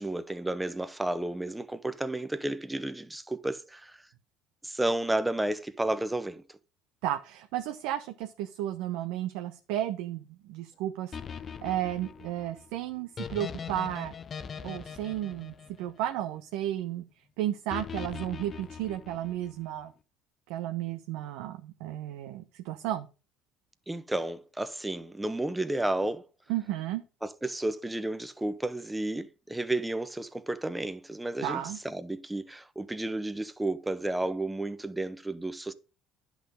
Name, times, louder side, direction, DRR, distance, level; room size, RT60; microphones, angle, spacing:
voice 1, 0.0-4.0 4.6-6.4 23.9-26.2 27.2-35.7, right 1 dB, 10° right, 1.2 m, -32 dB
voice 2, 7.0-11.1 11.6-14.1 14.6-17.0 17.4-19.9 20.5-23.1 26.5-27.0 31.4-31.8, right 12 dB, 75° right, 0.9 m, -33 dB
sound 1, 11.1-16.4 17.7-19.6, left 6 dB, 40° left, 0.8 m, -41 dB
10.5 x 6.2 x 3.8 m
supercardioid pair, 75°, 0 cm